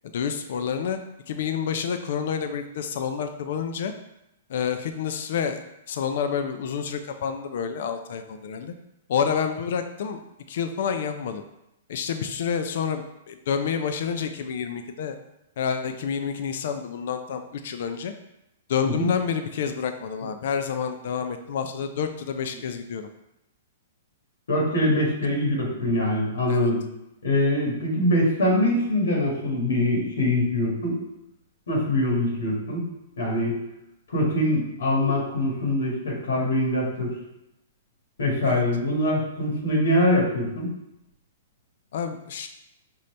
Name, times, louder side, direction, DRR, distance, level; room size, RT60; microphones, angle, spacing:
voice 1, 0.1-1.0 1.3-3.9 4.5-5.6 5.9-8.7 9.1-10.2 10.5-11.4 11.9-15.2 15.6-18.1 18.7-23.1 26.5-26.7 38.4-38.6 41.9-42.5, left 7 dB, 60° left, 8 dB, 0.4 m, -28 dB
voice 2, 24.5-26.8 27.2-31.0 31.7-32.8 33.2-33.6 34.1-37.1 38.2-40.7, left 1 dB, 90° left, -2 dB, 1.6 m, -23 dB
5.2 x 2.7 x 3.2 m, 0.86 s
hypercardioid pair, 150°, 0 cm